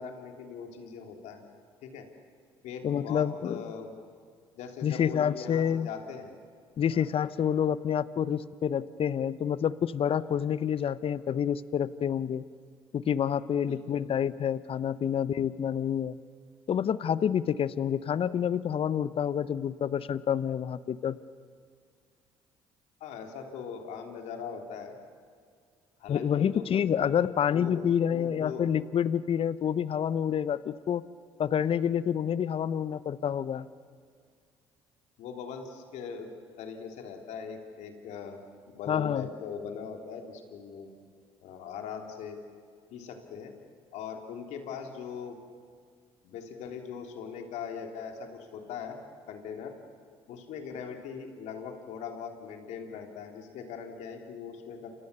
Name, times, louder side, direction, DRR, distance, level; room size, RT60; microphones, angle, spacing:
voice 1, 0.0-1.4 1.8-2.1 2.6-3.9 4.6-6.3 6.8-7.1 13.6-14.0 23.0-24.9 26.0-27.1 27.5-28.7 35.2-36.3 36.6-40.9 41.4-42.4 42.9-43.5 43.9-45.4 46.2-49.0 49.3-49.7 50.3-54.9, left 6 dB, 70° left, 4 dB, 3.4 m, -40 dB
voice 2, 2.8-3.7 4.8-5.9 6.8-12.4 12.9-16.2 16.7-21.2 26.1-31.0 31.4-33.7 38.9-39.3, left 8 dB, 50° left, 17 dB, 0.9 m, -28 dB
29.0 x 26.5 x 6.8 m, 2.1 s
hypercardioid pair, 55°, 12 cm